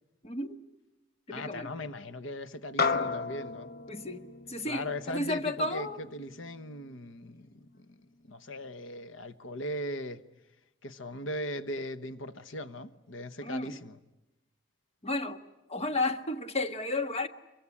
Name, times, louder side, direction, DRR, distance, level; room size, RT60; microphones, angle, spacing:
voice 1, 0.2-0.6 1.3-1.7 3.9-6.0 13.4-13.8 15.0-15.4 15.7-17.3, left 2 dB, 35° left, 1.4 m, -33 dB
voice 2, 1.3-3.7 4.6-8.0 8.3-10.2 10.8-14.0, left 1 dB, 90° left, 1.2 m, -39 dB
sound 1, 2.8-7.4, left 4 dB, 55° left, 1.0 m, -35 dB
24.0 x 23.5 x 9.8 m
head